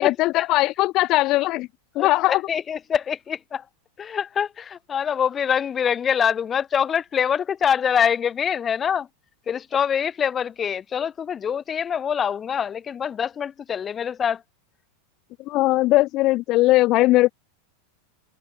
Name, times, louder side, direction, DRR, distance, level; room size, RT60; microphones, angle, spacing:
voice 1, 0.0-1.7 2.0-2.4 15.5-17.3, left 18 dB, 45° left, 0.4 m, -19 dB
voice 2, 2.0-3.6 4.0-9.1 9.5-14.4, left 8 dB, 25° left, 3.0 m, -24 dB
supercardioid pair, 130°, 0 cm